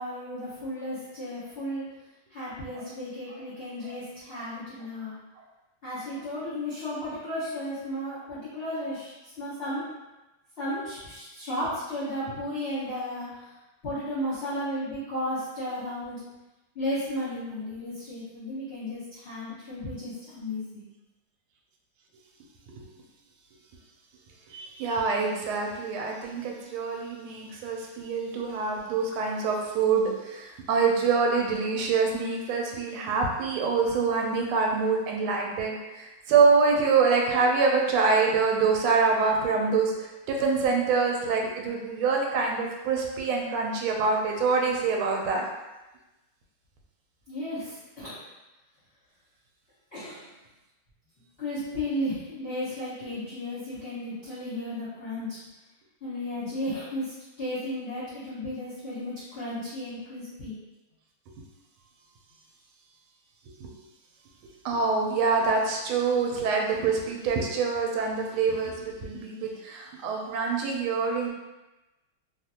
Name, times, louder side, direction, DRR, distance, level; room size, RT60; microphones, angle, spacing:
voice 1, 0.0-1.9 2.3-5.1 5.8-9.9 10.6-13.4 13.8-16.2 16.7-20.8 47.3-48.2 49.9-50.3 51.4-55.4 56.0-57.1 57.4-60.5, left 1 dB, 45° left, -11 dB, 0.8 m, -34 dB
voice 2, 24.5-45.4 63.6-63.7 64.6-71.3, right 4 dB, 80° right, 1 dB, 1.4 m, -25 dB
3.2 x 2.5 x 2.7 m, 1.0 s
omnidirectional pair, 2.4 m